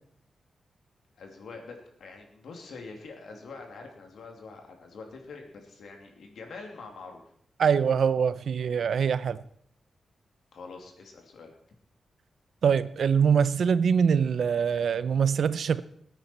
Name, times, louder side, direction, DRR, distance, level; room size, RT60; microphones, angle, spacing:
voice 1, 1.2-7.2 10.5-11.6, left 4 dB, 85° left, 2.6 m, -45 dB
voice 2, 7.6-9.4 12.6-15.8, right 7 dB, 70° right, 0.6 m, -24 dB
21.0 x 8.9 x 4.4 m
wide cardioid pair, 120°, 0 cm